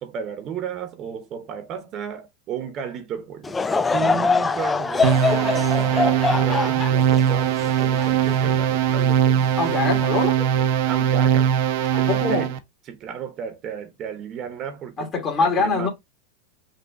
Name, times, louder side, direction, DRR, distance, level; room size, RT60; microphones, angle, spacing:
voice 1, 0.0-5.6 5.9-9.5 9.8-9.9 10.9-11.6 12.0-12.5 12.9-15.1 15.4-15.9, right 8 dB, 40° right, 0.9 m, -33 dB
Laughter / Crowd, 3.4-8.9 9.5-9.6 10.4-10.6, left 4 dB, 15° left, 0.3 m, -24 dB
sound 1, 5.0-12.6, right 9 dB, 65° right, 0.7 m, -20 dB
voice 2, 9.6-10.4 11.9-12.5 15.0-15.9, left 4 dB, 35° left, 1.5 m, -23 dB
5.5 x 2.4 x 3.4 m
hypercardioid pair, 110°, 0 cm